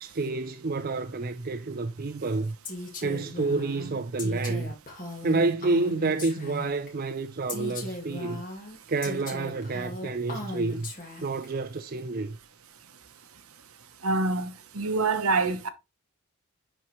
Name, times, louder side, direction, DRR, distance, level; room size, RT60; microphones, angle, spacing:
voice 1, 0.0-2.5 3.0-4.7 5.2-8.4 8.9-10.9 11.2-12.4, right 3 dB, 40° right, 0.6 m, -29 dB
Female speech woman speaking, 2.6-6.9 7.5-11.5, left 2 dB, 40° left, 2.0 m, -38 dB
voice 2, 14.0-15.7, right 3 dB, 70° right, 1.0 m, -26 dB
10.5 x 4.5 x 3.2 m
head